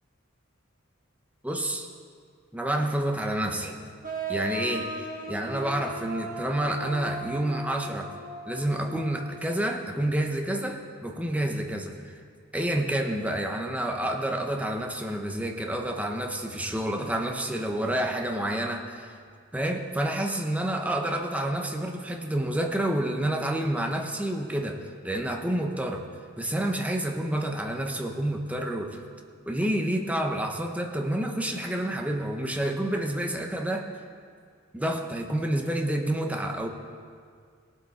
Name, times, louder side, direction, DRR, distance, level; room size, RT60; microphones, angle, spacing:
voice 1, 1.4-1.9 2.5-3.8 4.3-4.9 5.3-8.1 8.5-12.1 12.5-19.1 19.5-26.0 26.4-29.0 29.5-33.9 34.7-36.7, right 1 dB, 5° right, 3 dB, 0.8 m, -29 dB
sound 1, 4.0-9.5, right 2 dB, 40° right, 1.6 m, -37 dB
18.0 x 7.8 x 4.3 m, 2.1 s
head